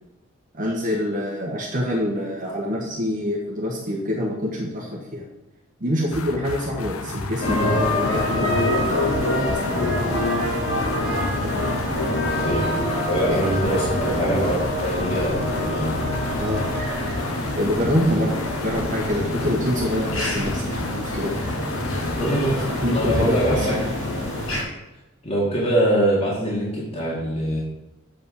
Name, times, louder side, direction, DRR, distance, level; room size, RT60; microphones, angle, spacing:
voice 1, 0.5-5.3 5.8-9.9 11.4-11.7 13.3-13.5 16.4-16.7 17.5-21.3 22.2-24.0, left 1 dB, 40° right, -3 dB, 1.4 m, -26 dB
sound 1, 6.1-23.5, left 2 dB, 85° left, 0.9 m, -32 dB
sound 2, 7.4-24.6, left 1 dB, 70° left, 2.6 m, -25 dB
voice 2, 12.3-12.7 13.1-15.9 22.2-23.8 25.2-27.6, right 1 dB, 30° left, -7 dB, 2.1 m, -23 dB
7.6 x 5.0 x 6.9 m, 0.97 s
head